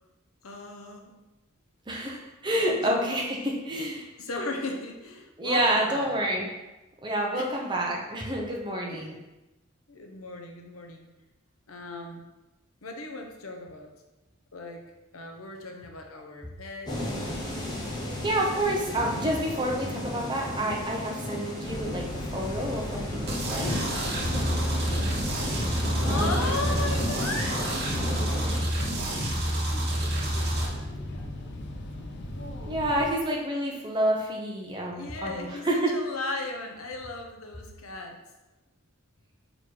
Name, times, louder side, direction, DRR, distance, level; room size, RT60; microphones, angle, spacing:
voice 1, 0.4-1.1 2.8-2.9 4.2-6.2 7.3-7.5 7.9-8.0 8.9-9.2 9.9-11.1 11.7-12.2 12.8-13.9 14.5-14.9 15.1-17.0 18.0-19.2 23.6-24.5 26.0-27.8 29.9-31.0 32.9-33.1 33.4-33.5 34.9-38.2, left 2 dB, 85° left, 3 dB, 1.0 m, -37 dB
voice 2, 1.9-4.1 5.4-6.5 7.0-9.2 18.2-22.1 22.3-23.7 26.1-26.5 32.7-35.9, right 1 dB, 20° right, -1 dB, 0.9 m, -28 dB
sound 1, 16.9-28.6, left 1 dB, 20° left, 1.0 m, -34 dB
sound 2, 21.7-33.1, left 1 dB, 50° left, 0.7 m, -37 dB
sound 3, 23.3-30.6, right 1 dB, 50° right, 1.3 m, -29 dB
6.3 x 3.8 x 4.7 m, 1.0 s
head